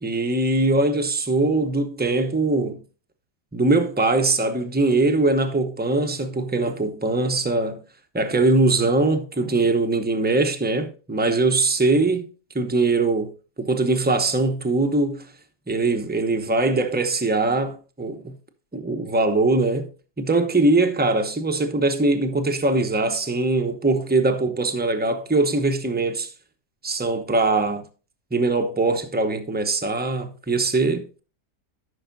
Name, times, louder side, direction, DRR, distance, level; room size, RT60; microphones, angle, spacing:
voice 1, 0.0-2.8 3.5-7.8 8.1-12.3 12.5-13.3 13.6-15.2 15.7-18.3 18.7-19.9 20.2-26.3 26.8-27.8 28.3-31.2, right 2 dB, 10° right, 0.5 m, -22 dB
14.0 x 6.2 x 2.7 m
omnidirectional pair, 1.8 m